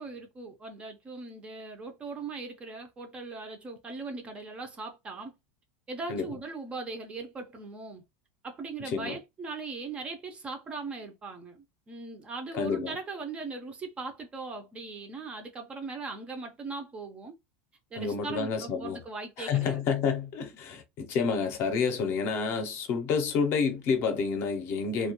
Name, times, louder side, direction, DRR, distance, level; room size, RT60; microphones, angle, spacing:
voice 1, 0.0-5.3 5.9-8.0 8.4-17.3 17.9-19.8, right 3 dB, 20° right, 0.4 m, -39 dB
voice 2, 12.5-12.9 18.0-19.0 19.4-25.1, left 5 dB, 40° left, 0.5 m, -29 dB
2.2 x 2.2 x 2.8 m
supercardioid pair, 160°, 6 cm